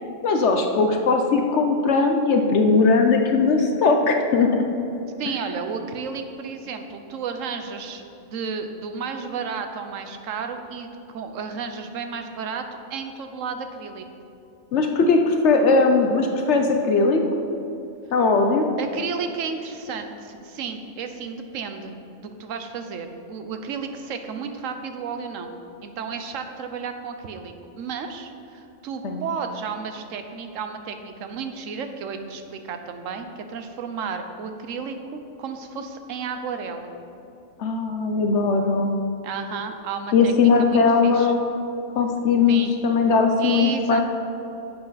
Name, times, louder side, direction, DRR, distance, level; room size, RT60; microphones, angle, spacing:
voice 1, 0.2-4.6 14.7-17.2 18.1-18.7 29.0-29.2 37.6-38.9 40.1-41.4 42.0-44.0, left 4 dB, 65° left, 4 dB, 1.0 m, -19 dB
voice 2, 5.2-10.9 11.1-14.0 18.8-25.5 25.8-36.9 39.2-41.3 42.5-42.7 43.4-44.0, right 5 dB, 85° right, 7 dB, 1.1 m, -32 dB
10.0 x 7.8 x 4.0 m, 2.9 s
omnidirectional pair, 1.3 m